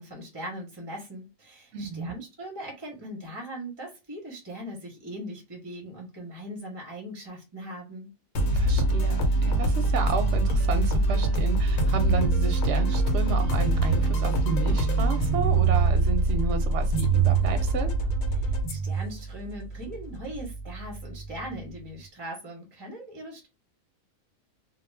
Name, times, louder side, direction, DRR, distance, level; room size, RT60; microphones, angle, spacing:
voice 1, 0.0-8.1 18.3-23.5, equal, 25° right, 0.6 m, -40 dB
voice 2, 1.7-2.1 8.5-17.9, right 5 dB, 65° right, 0.8 m, -32 dB
sound 1, 8.3-21.7, right 2 dB, 85° left, 1.1 m, -24 dB
2.2 x 2.2 x 3.1 m
omnidirectional pair, 1.4 m